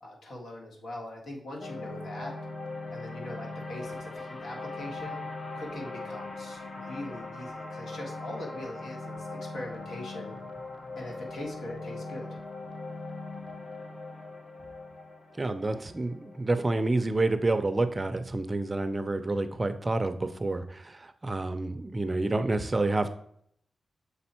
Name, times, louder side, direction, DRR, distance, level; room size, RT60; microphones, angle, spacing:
voice 1, 0.0-2.3 2.9-5.2 5.5-10.4 11.0-12.4, left 1 dB, 90° left, -1 dB, 1.7 m, -41 dB
sound 1, 1.6-17.9, left 2 dB, 30° left, 0.7 m, -40 dB
voice 2, 15.4-23.2, right 2 dB, 20° right, 9 dB, 0.4 m, -28 dB
6.8 x 4.3 x 4.3 m, 0.67 s
wide cardioid pair, 145°, 0 cm